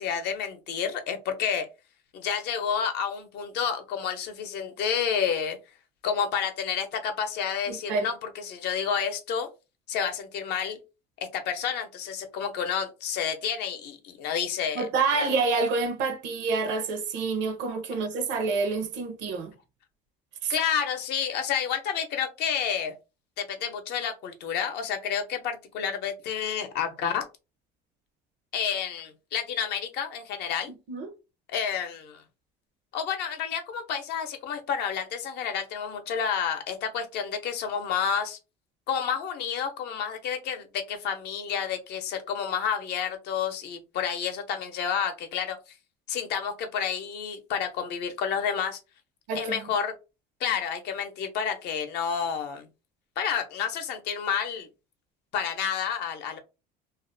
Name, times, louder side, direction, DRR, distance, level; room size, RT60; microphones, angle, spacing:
voice 1, 0.0-1.7 2.1-5.6 6.0-9.5 9.9-10.8 11.3-14.9 15.2-15.3 20.5-22.9 23.4-27.3 28.5-30.7 31.5-32.2 32.9-38.4 38.9-45.7 46.1-48.8 49.3-49.9 50.4-52.7 53.2-54.7 55.3-56.4, left 7 dB, 60° left, 0.7 m, -30 dB
voice 2, 7.7-8.1 14.7-19.5 20.4-20.5 30.9-31.1 49.3-49.6, right 4 dB, 70° right, 0.7 m, -28 dB
2.5 x 2.0 x 2.5 m
supercardioid pair, 105°, 19 cm